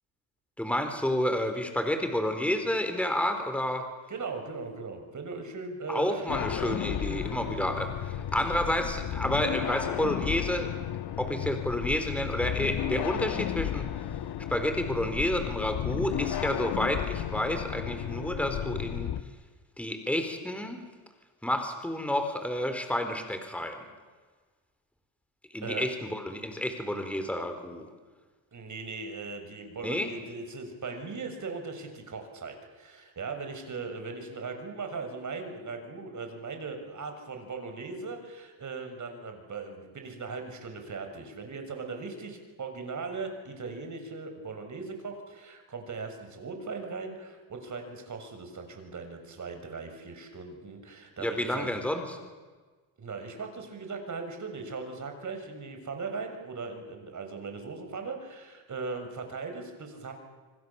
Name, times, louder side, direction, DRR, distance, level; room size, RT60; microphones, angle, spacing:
voice 1, 0.6-3.8 5.9-10.7 11.2-13.9 14.5-19.1 19.8-20.8 21.4-23.8 25.5-27.9 29.8-30.1 51.2-52.2, left 1 dB, 5° left, 6 dB, 4.1 m, -30 dB
voice 2, 4.1-6.3 25.6-25.9 28.5-51.7 53.0-60.1, right 4 dB, 35° right, 5 dB, 6.5 m, -39 dB
sound 1, 6.3-19.2, left 11 dB, 50° left, 1.2 m, -33 dB
27.0 x 25.5 x 7.2 m, 1.4 s
supercardioid pair, 90°, 50 cm